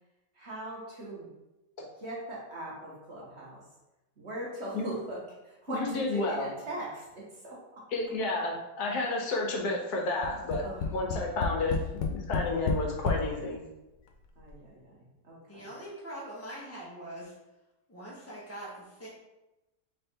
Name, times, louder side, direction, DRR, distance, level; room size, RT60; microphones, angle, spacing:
voice 1, 0.3-1.3 2.0-3.7 4.2-7.9 10.6-11.0 14.3-15.7, right 1 dB, 45° right, -5 dB, 1.2 m, -40 dB
voice 2, 5.7-6.5 7.9-10.6 10.9-13.6, left 2 dB, 70° left, 0 dB, 1.3 m, -31 dB
Tap, 10.2-13.3 14.1-14.2 14.5-14.6, left 5 dB, 85° left, 1.3 m, -30 dB
voice 3, 15.5-17.3 17.9-19.1, right 1 dB, 20° left, -7 dB, 0.4 m, -43 dB
3.4 x 3.3 x 4.3 m, 1.0 s
omnidirectional pair, 1.8 m